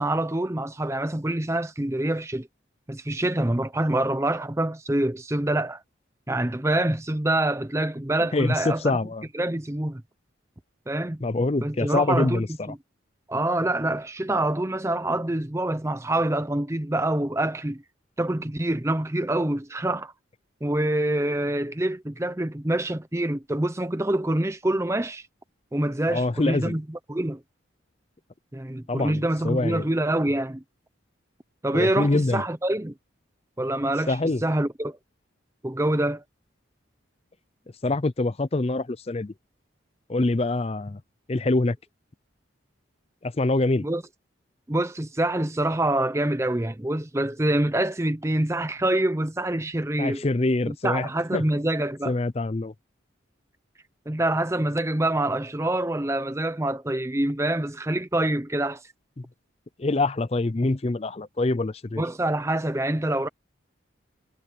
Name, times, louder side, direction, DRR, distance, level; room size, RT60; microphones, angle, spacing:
voice 1, 0.0-2.5 2.9-5.8 6.3-9.0 9.3-10.0 10.9-11.2 11.6-12.8 13.3-17.8 18.2-20.1 20.6-25.3 25.7-27.4 28.5-30.6 31.6-32.9 33.6-35.0 35.6-36.2 43.8-44.0 44.7-50.2 50.7-52.1 54.1-58.8 62.0-63.3, right 1 dB, 15° right, 0.6 m, -26 dB
voice 2, 8.3-9.3 11.2-12.7 26.1-26.8 28.9-29.9 31.7-32.4 34.1-34.4 37.8-39.3 40.1-41.0 41.3-41.8 43.2-43.9 50.0-51.4 52.1-52.7 59.8-62.0, left 2 dB, 30° left, 0.5 m, -25 dB
head